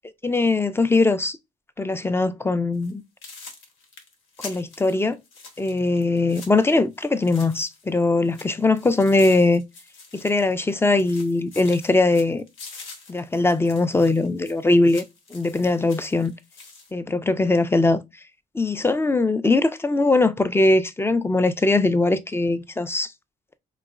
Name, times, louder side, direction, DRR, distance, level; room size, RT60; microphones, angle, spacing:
voice 1, 0.2-1.4 1.8-3.0 4.4-5.2 5.6-9.6 10.1-12.4 13.1-15.0 15.3-16.3 16.9-18.0 18.5-23.1, left 2 dB, 10° left, 0.3 m, -21 dB
sound 1, 2.7-2.9 3.2-8.0 8.2-10.7 11.0-16.9, left 3 dB, 85° left, 1.0 m, -45 dB
3.9 x 2.9 x 2.4 m
cardioid pair, 90°, 20 cm